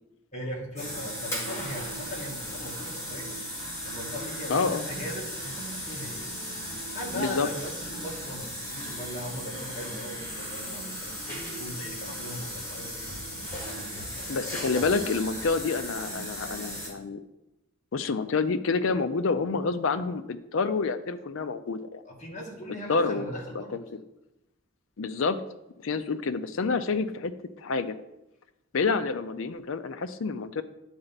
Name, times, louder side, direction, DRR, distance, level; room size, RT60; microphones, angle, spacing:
voice 1, 0.3-3.4 3.8-6.3 6.9-13.1 13.4-14.5 22.0-23.8, equal, 35° left, -1 dB, 1.6 m, -39 dB
sound 1, 0.8-16.9, equal, 15° left, 2.0 m, -36 dB
voice 2, 4.5-4.8 7.1-7.5 14.3-17.2 17.9-22.0 22.9-23.3 23.7-23.8 25.0-25.4 25.8-28.0 28.7-30.6, left 4 dB, 70° left, 12 dB, 0.5 m, -28 dB
10.0 x 4.4 x 4.0 m, 0.93 s
head